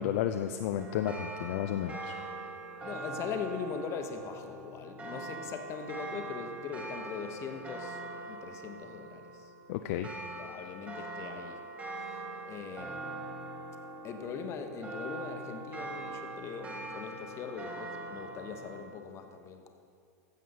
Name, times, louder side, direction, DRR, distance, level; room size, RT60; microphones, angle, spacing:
voice 1, 0.0-2.2 9.7-10.1, left 10 dB, 50° left, 7 dB, 0.4 m, -32 dB
sound 1, 0.8-18.8, right 2 dB, 15° right, 2.1 m, -42 dB
voice 2, 2.8-9.5 10.4-11.6 12.0-13.3 14.0-19.7, left 6 dB, 30° left, 6 dB, 0.9 m, -41 dB
15.0 x 7.5 x 4.0 m, 2.4 s
figure-of-eight pair, 95°, 9 cm